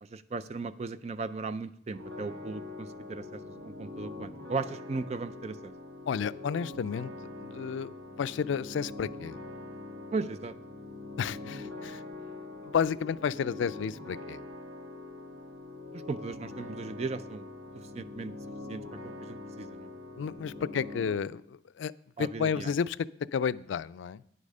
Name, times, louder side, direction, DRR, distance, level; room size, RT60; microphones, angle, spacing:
voice 1, 0.1-5.7 10.1-10.5 15.9-17.5 17.9-18.3 18.7-19.9 22.2-22.7, right 4 dB, 35° right, 13 dB, 0.4 m, -37 dB
sound 1, 1.9-21.1, left 2 dB, 75° right, 1.5 m, -43 dB
voice 2, 6.1-7.1 7.4-9.4 11.2-12.0 12.6-14.4 20.2-21.9 22.2-23.0 23.3-24.2, left 7 dB, 80° left, 17 dB, 0.3 m, -31 dB
9.9 x 8.4 x 5.4 m, 0.72 s
head